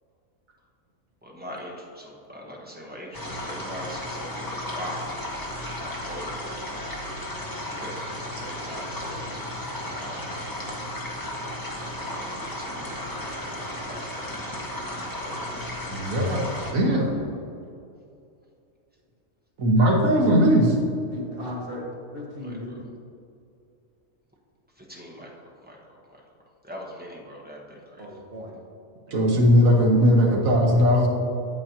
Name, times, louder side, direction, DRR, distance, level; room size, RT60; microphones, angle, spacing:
voice 1, 1.2-5.1 5.7-6.6 7.6-7.9 8.3-10.2 12.1-13.0 13.5-14.3 15.1-15.5 22.4-22.8 24.8-25.3 25.6-25.8 26.6-28.1, equal, 10° right, -3 dB, 1.0 m, -41 dB
sound 1, 3.1-16.7, left 1 dB, 15° left, 1.0 m, -34 dB
voice 2, 15.9-17.2 19.6-20.8 29.1-31.1, equal, 80° right, 0 dB, 1.6 m, -19 dB
voice 3, 21.1-21.8 22.1-22.7 28.0-28.6 29.1-29.4, left 1 dB, 45° right, -4 dB, 1.8 m, -37 dB
8.5 x 8.5 x 2.9 m, 2.5 s
omnidirectional pair, 1.4 m